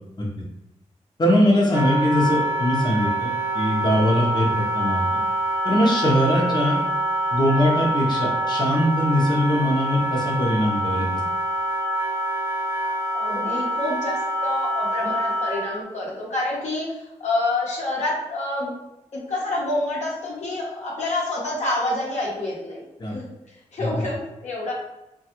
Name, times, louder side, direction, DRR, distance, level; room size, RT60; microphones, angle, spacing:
voice 1, 1.2-3.3 3.5-5.0 5.6-6.8 7.3-11.2 23.0-23.2 23.8-23.9, left 1 dB, 35° left, -3 dB, 0.8 m, -21 dB
Wind instrument woodwind instrument, 1.7-15.8, right 1 dB, 25° right, 0.6 m, -25 dB
voice 2, 13.1-18.7 19.1-22.8 23.1-23.3 23.7-24.7, left 2 dB, 75° left, -4 dB, 0.9 m, -27 dB
3.1 x 2.3 x 2.9 m, 0.89 s
cardioid pair, 50°, 12 cm